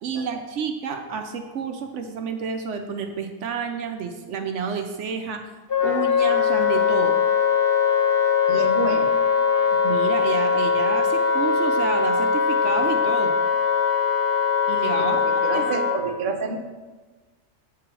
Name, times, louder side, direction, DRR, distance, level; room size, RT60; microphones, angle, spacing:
voice 1, 0.0-5.4 5.8-7.2 9.7-13.3 14.7-15.2 15.5-15.7, right 6 dB, 75° right, 6 dB, 1.0 m, -30 dB
Wind instrument woodwind instrument, 5.7-16.0, left 6 dB, 55° left, 1.3 m, -21 dB
voice 2, 8.5-9.2 15.0-16.6, right 4 dB, 50° right, 4 dB, 0.9 m, -29 dB
8.1 x 4.8 x 6.1 m, 1.3 s
omnidirectional pair, 1.3 m